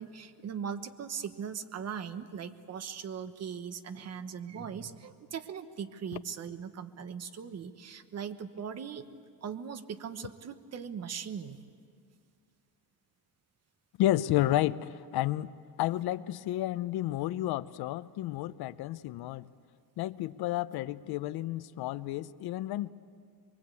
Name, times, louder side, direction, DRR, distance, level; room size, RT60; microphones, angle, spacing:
voice 1, 0.0-9.0 9.4-11.6, right 7 dB, 40° right, 11 dB, 1.2 m, -39 dB
voice 2, 14.0-19.5 20.0-22.9, left 14 dB, 70° left, 16 dB, 0.7 m, -31 dB
24.0 x 23.5 x 8.4 m, 2.2 s
cardioid pair, 145°, 39 cm